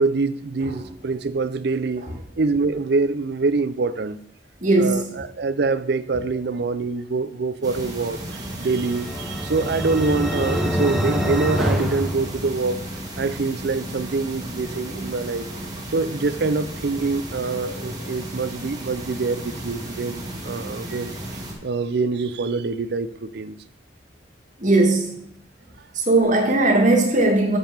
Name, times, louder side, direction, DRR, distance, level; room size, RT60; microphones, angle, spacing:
voice 1, 0.0-2.1 2.4-4.2 4.8-12.8 13.2-15.4 15.9-21.2 21.6-23.6, right 3 dB, 60° right, 0.5 m, -25 dB
voice 2, 4.6-5.1 20.4-20.6 24.6-25.1 25.9-27.6, right 2 dB, 45° right, 1.8 m, -18 dB
sound 1, 7.6-21.5, right 1 dB, 20° right, 1.6 m, -34 dB
sound 2, 8.4-13.0, equal, ahead, 0.9 m, -26 dB
6.8 x 5.4 x 5.9 m
head